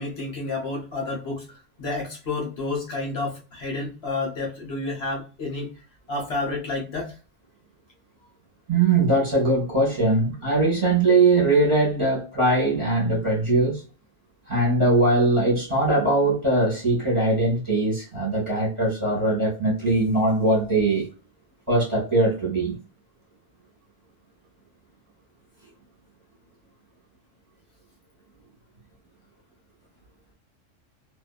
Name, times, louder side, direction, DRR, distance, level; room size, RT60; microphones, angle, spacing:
voice 1, 0.0-1.5 1.8-5.7 6.1-7.1, left 3 dB, 55° left, 1.1 m, -30 dB
voice 2, 8.7-13.8 14.5-21.1 21.7-22.8, right 2 dB, 25° right, 1.1 m, -21 dB
2.7 x 2.3 x 2.3 m
omnidirectional pair, 1.3 m